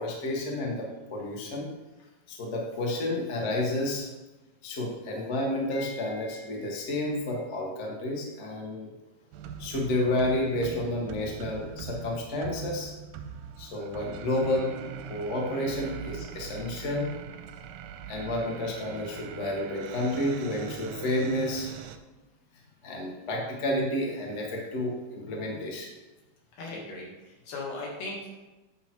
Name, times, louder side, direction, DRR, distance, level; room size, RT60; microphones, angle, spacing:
voice 1, 0.0-1.7 2.3-4.0 4.6-8.9 9.6-12.9 13.6-14.8 15.1-17.1 18.1-21.7 22.8-25.9, left 1 dB, 50° left, -1 dB, 0.8 m, -30 dB
sound 1, 9.3-22.0, right 7 dB, 80° right, 1.8 m, -41 dB
voice 2, 26.5-28.3, left 2 dB, 80° left, -3 dB, 3.5 m, -38 dB
8.7 x 5.7 x 4.5 m, 1.1 s
omnidirectional pair, 3.8 m